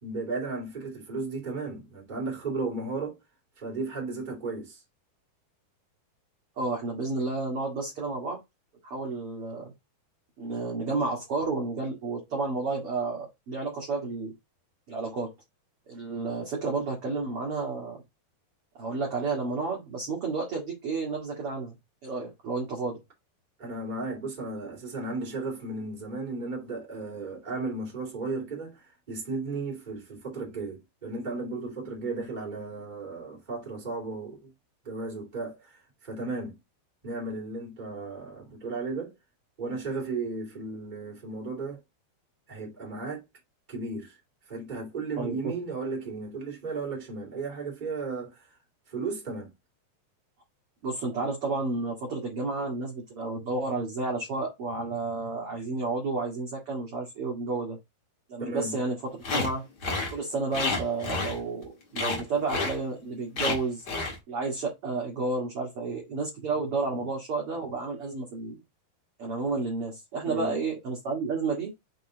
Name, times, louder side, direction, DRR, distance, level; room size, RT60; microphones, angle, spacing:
voice 1, 0.0-3.2 3.6-4.8 23.6-34.5 34.8-36.6 37.0-39.1 39.6-41.8 42.5-43.2 43.7-44.2 44.5-48.5 48.9-49.5 58.4-58.7 70.2-70.6, right 3 dB, 15° right, 2.3 m, -35 dB
voice 2, 6.6-8.4 8.8-9.7 10.4-14.3 14.9-15.3 15.9-18.0 18.8-21.8 22.0-23.0 45.2-45.3 50.8-57.8 58.3-59.0 59.3-59.7 60.1-63.8 64.3-68.6 69.2-71.7, right 3 dB, 50° right, 1.9 m, -31 dB
sound 1, 59.2-59.5 59.8-60.1 60.5-61.6 61.9-62.2 62.5-62.8 63.4-63.6 63.9-64.2, left 3 dB, 55° left, 1.1 m, -29 dB
6.0 x 4.1 x 3.8 m
omnidirectional pair, 4.7 m